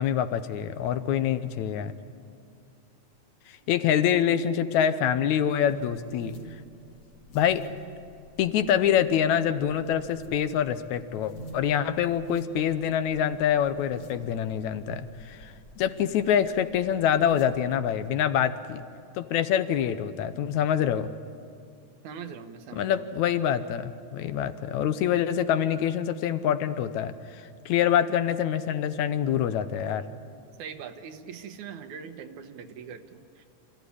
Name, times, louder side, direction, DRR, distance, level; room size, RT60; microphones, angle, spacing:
voice 1, 0.0-1.9 3.5-6.4 7.3-7.6 8.4-18.8 19.2-21.1 22.7-30.0, left 9 dB, 75° left, 11 dB, 2.1 m, -26 dB
sound 1, 5.3-18.2, equal, 55° left, 3.4 m, -48 dB
voice 2, 22.0-23.1 30.6-33.5, right 6 dB, 75° right, 7 dB, 2.5 m, -41 dB
26.5 x 14.5 x 9.9 m, 2.5 s
omnidirectional pair, 3.4 m